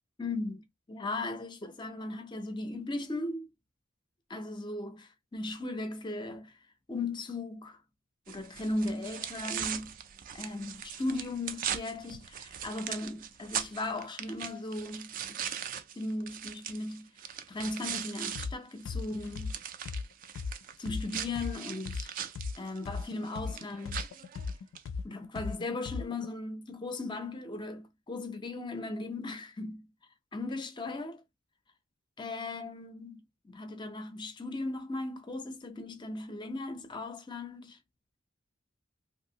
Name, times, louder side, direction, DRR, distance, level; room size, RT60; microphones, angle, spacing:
voice 1, 0.2-3.5 4.3-6.6 6.9-7.8 8.3-10.0 10.3-15.5 16.0-17.1 17.5-19.6 20.8-22.1 22.6-24.1 25.0-29.9 30.3-31.2 32.2-37.8, left 2 dB, 25° left, 0.5 m, -37 dB
sound 1, 8.3-18.5 18.8-24.9, right 9 dB, 45° right, 0.3 m, -40 dB
sound 2, 18.3-18.5 18.8-22.5 22.8-26.3, left 4 dB, 75° left, 0.3 m, -37 dB
2.7 x 2.6 x 2.7 m
head